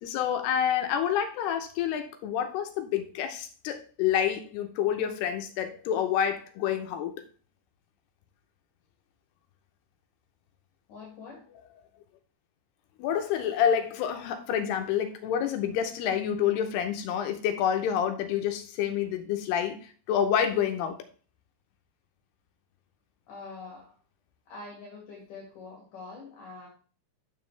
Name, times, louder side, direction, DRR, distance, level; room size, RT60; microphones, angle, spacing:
voice 1, 0.0-7.2 13.0-21.0, left 9 dB, 85° left, 7 dB, 2.9 m, -28 dB
voice 2, 10.9-11.5 23.3-24.0 24.5-26.7, left 3 dB, 60° left, -2 dB, 3.4 m, -44 dB
9.8 x 7.4 x 3.3 m, 0.38 s
omnidirectional pair, 4.6 m